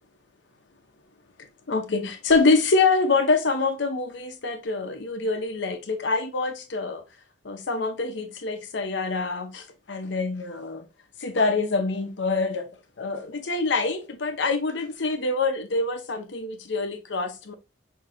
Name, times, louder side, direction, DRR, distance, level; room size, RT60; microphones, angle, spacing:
voice 1, 1.7-7.0 7.4-10.8 11.2-12.7 13.0-17.5, left 3 dB, 75° left, 0.8 m, -25 dB
5.8 x 2.9 x 2.5 m
head